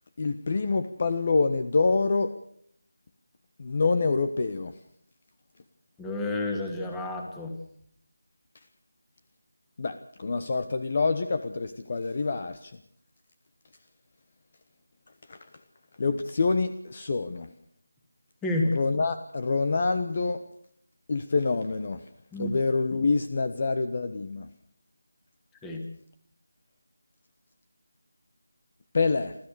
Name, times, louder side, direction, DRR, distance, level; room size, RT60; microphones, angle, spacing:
voice 1, 0.2-2.4 3.6-4.7 9.8-12.7 15.3-15.4 16.0-17.5 18.7-20.4 21.1-22.0 22.4-24.5 28.9-29.4, left 4 dB, 35° left, 10 dB, 1.1 m, -26 dB
voice 2, 6.0-7.6 18.4-18.8 22.3-22.5 25.6-25.9, left 2 dB, 5° left, 3 dB, 2.2 m, -30 dB
28.5 x 13.5 x 6.8 m, 0.65 s
figure-of-eight pair, 170°, 0 cm